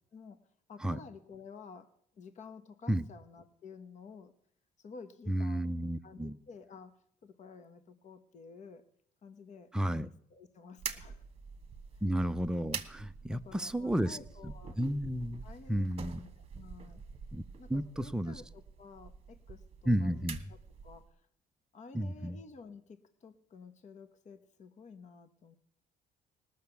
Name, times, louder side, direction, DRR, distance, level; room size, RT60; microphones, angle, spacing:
voice 1, 0.1-1.9 2.1-4.3 4.8-5.7 6.0-8.9 9.2-11.2 11.9-12.0 13.3-14.8 15.4-17.0 17.6-20.3 20.8-21.2 21.7-25.6, left 5 dB, 45° left, 10 dB, 1.1 m, -52 dB
voice 2, 5.3-6.4 9.7-10.1 12.0-14.2 14.4-15.4 15.7-16.2 17.3-17.4 17.7-18.4 19.9-20.4 21.9-22.4, equal, 5° right, 10 dB, 0.5 m, -32 dB
sound 1, 10.8-21.1, right 6 dB, 35° right, 1.2 m, -46 dB
19.0 x 6.5 x 7.0 m, 0.68 s
cardioid pair, 110°, 17 cm